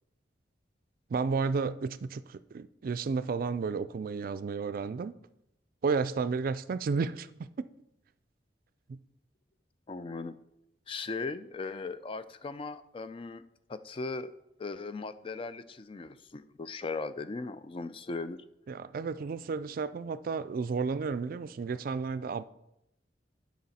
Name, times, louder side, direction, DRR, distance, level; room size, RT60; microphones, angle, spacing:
voice 1, 1.1-5.1 5.8-7.3 7.6-7.7 8.9-9.0 18.7-22.4, right 5 dB, 55° right, 0.3 m, -32 dB
voice 2, 9.9-10.4 10.9-13.4 13.7-14.3 14.6-18.4, left 3 dB, 30° left, 0.4 m, -38 dB
11.5 x 5.2 x 4.2 m
head